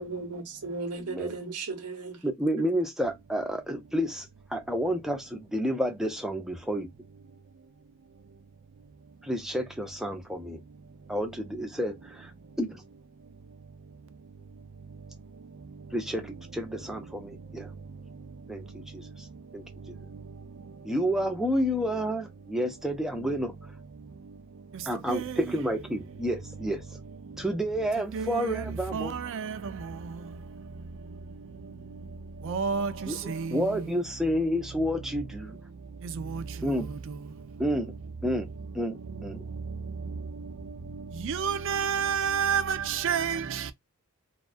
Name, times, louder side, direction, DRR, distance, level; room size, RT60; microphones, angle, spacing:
voice 1, 0.0-2.2, right 3 dB, 90° right, 0.8 m, -35 dB
voice 2, 1.0-1.3 2.2-6.9 9.2-10.6 11.1-12.3 12.6-12.8 15.9-17.7 18.5-19.3 19.5-20.0 20.8-23.5 24.9-27.0 27.4-29.2 33.1-35.6 36.6-36.9 37.6-37.9 38.2-39.4, equal, ahead, 0.5 m, -30 dB
voice 3, 8.8-9.3 10.8-11.1 12.4-12.6 13.2-16.0 17.1-20.9 23.9-25.6 27.2-27.5 28.1-34.0 35.5-37.7 38.9-43.7, right 6 dB, 55° right, 0.4 m, -35 dB
2.3 x 2.2 x 2.4 m
head